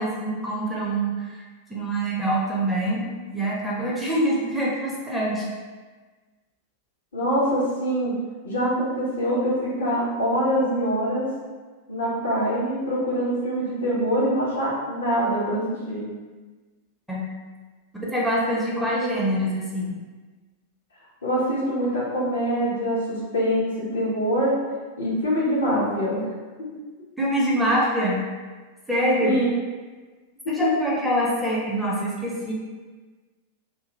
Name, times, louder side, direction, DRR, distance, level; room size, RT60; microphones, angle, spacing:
voice 1, 0.0-1.4 1.7-5.5 17.1-17.3 18.1-19.9 27.2-28.3 28.9-29.4 30.5-32.5, right 1 dB, ahead, -6 dB, 0.7 m, -25 dB
voice 2, 7.1-8.1 8.4-11.3 11.9-16.0 21.2-24.5 25.0-26.7 29.2-29.5 30.4-30.7, equal, 70° left, -6 dB, 0.9 m, -24 dB
2.5 x 2.4 x 3.0 m, 1.3 s
figure-of-eight pair, 90°, 0 cm